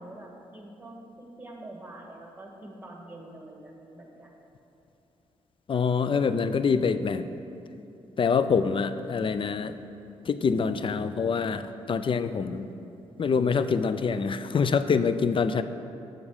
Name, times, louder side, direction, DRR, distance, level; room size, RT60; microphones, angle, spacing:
voice 1, 0.0-4.3, right 1 dB, 15° right, 0 dB, 1.7 m, -45 dB
voice 2, 5.7-7.3 8.2-9.8 10.2-12.7 13.2-15.6, left 5 dB, 40° left, 12 dB, 0.4 m, -25 dB
7.0 x 6.3 x 4.9 m, 2.8 s
supercardioid pair, 50°, 13 cm